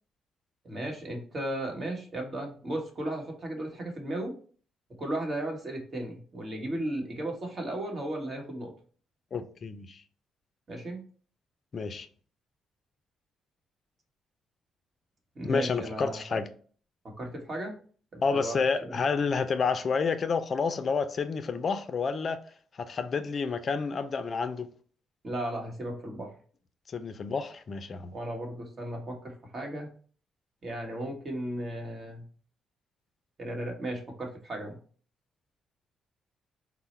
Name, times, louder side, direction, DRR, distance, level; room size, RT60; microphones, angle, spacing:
voice 1, 0.6-4.3 5.0-8.7 10.7-11.0 15.3-16.2 17.0-17.8 18.1-19.0 25.2-26.3 28.1-29.9 30.6-32.2 33.4-34.7, right 1 dB, 40° right, 1.3 m, -35 dB
voice 2, 9.3-10.0 11.7-12.1 15.4-16.5 18.2-22.4 22.8-24.7 26.9-28.1, left 5 dB, 45° left, 0.4 m, -29 dB
4.5 x 2.0 x 4.2 m
cardioid pair, 90°, 0 cm